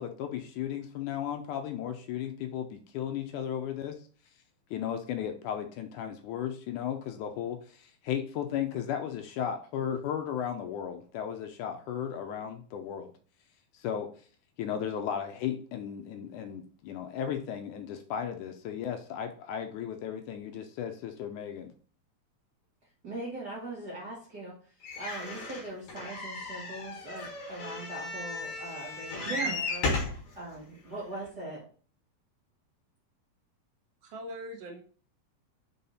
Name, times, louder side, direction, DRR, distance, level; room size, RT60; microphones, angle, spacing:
voice 1, 0.0-3.9 4.7-13.1 13.7-14.1 14.6-21.7, left 9 dB, 80° left, 5 dB, 1.8 m, -35 dB
voice 2, 23.0-29.9 30.3-31.7, right 1 dB, 55° right, -5 dB, 1.1 m, -41 dB
sound 1, 24.8-30.2 30.9-31.0 31.3-31.4, left 3 dB, 60° left, 2.7 m, -35 dB
voice 3, 29.3-29.6 34.0-34.8, right 4 dB, 80° right, 0 dB, 1.4 m, -37 dB
5.5 x 4.2 x 4.1 m, 0.42 s
omnidirectional pair, 4.1 m